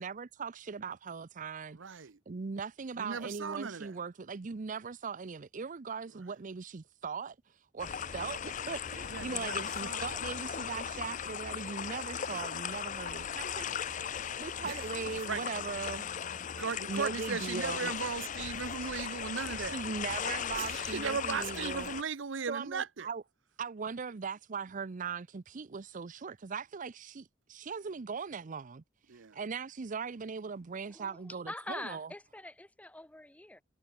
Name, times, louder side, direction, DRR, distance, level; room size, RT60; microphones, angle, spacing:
voice 1, 0.0-1.8 2.3-7.4 7.7-16.1 16.9-17.9 19.6-21.9 22.5-23.2 23.6-28.8 29.3-32.1, right 5 dB, 45° right, 0.5 m, -39 dB
voice 2, 1.7-2.2 3.0-4.0 9.1-10.0 14.6-14.9 15.3-15.4 16.6-19.8 20.5-23.1 29.1-29.4, right 5 dB, 85° right, 0.8 m, -37 dB
sound 1, 7.8-22.0, left 8 dB, 40° left, 0.5 m, -38 dB
voice 3, 30.8-33.6, left 1 dB, 10° left, 0.8 m, -44 dB
head